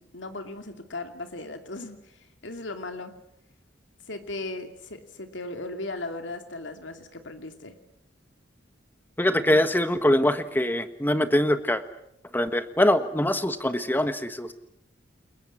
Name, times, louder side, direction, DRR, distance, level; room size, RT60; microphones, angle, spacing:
voice 1, 0.0-2.2 2.4-3.1 4.1-7.8 9.4-9.6, left 2 dB, 80° left, 6 dB, 2.6 m, -37 dB
voice 2, 9.2-11.8 12.3-14.5, left 1 dB, 10° left, 10 dB, 1.5 m, -23 dB
29.0 x 22.0 x 7.3 m, 0.76 s
head